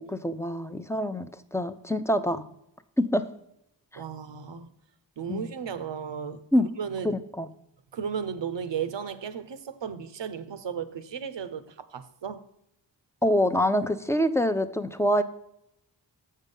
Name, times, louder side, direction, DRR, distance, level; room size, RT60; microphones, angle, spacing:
voice 1, 0.0-2.5 3.0-3.2 3.9-4.0 5.3-5.5 6.5-6.7 7.0-7.5 13.2-15.2, equal, 5° left, 0.6 m, -25 dB
voice 2, 3.9-4.7 5.2-7.2 7.9-12.5, right 7 dB, 75° right, 0.8 m, -35 dB
7.3 x 5.5 x 5.4 m
cardioid pair, 50°, 44 cm